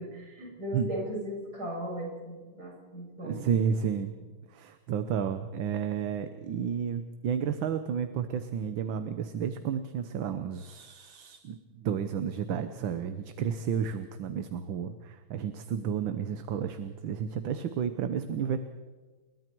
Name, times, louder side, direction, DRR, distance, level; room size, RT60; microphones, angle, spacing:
voice 1, 0.0-3.4, equal, 45° right, -3 dB, 8.7 m, -37 dB
voice 2, 3.2-4.1 4.5-18.6, right 7 dB, 70° right, 9 dB, 1.7 m, -32 dB
29.0 x 22.5 x 4.6 m, 1.3 s
omnidirectional pair, 2.3 m